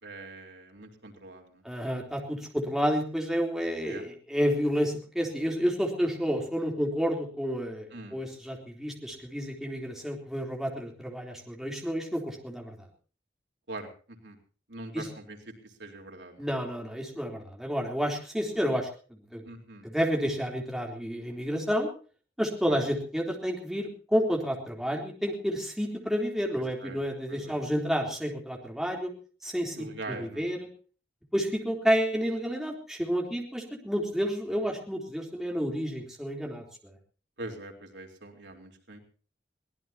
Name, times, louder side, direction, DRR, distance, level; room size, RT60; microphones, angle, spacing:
voice 1, 0.0-1.6 3.9-4.0 7.9-8.2 13.7-14.4 14.7-16.5 18.7-18.8 19.4-19.9 22.7-22.9 26.8-27.0 27.3-27.6 29.7-30.5 34.5-34.7 37.4-39.0, right 2 dB, 90° right, 3 dB, 4.0 m, -43 dB
voice 2, 1.6-12.7 14.9-15.1 16.4-18.9 19.3-19.4 19.8-21.9 22.4-29.1 29.4-30.6 31.3-36.9, equal, ahead, 0 dB, 3.7 m, -30 dB
23.5 x 18.5 x 2.9 m, 0.40 s
head